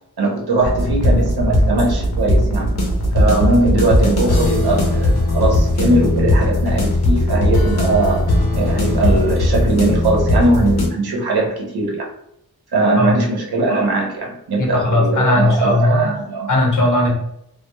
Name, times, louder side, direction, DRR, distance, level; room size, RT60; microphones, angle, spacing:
voice 1, 0.2-2.7 3.1-12.1 12.7-16.5, right 2 dB, 80° right, -1 dB, 0.7 m, -20 dB
sound 1, 0.6-10.9, left 1 dB, 90° left, 0.6 m, -18 dB
voice 2, 14.6-16.0 16.5-17.1, left 2 dB, 55° left, -1 dB, 0.7 m, -17 dB
2.2 x 2.0 x 2.8 m, 0.78 s
wide cardioid pair, 105°, 37 cm